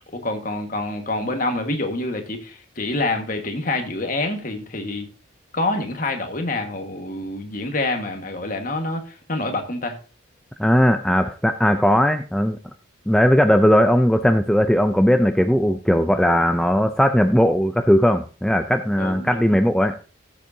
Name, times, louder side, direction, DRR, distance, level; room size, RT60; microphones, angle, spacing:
voice 1, 0.1-5.1 5.5-10.0 19.0-19.6, left 2 dB, 40° left, 1.6 m, -27 dB
voice 2, 10.6-12.6 13.1-20.0, equal, 5° left, 0.4 m, -18 dB
15.5 x 7.4 x 2.7 m
head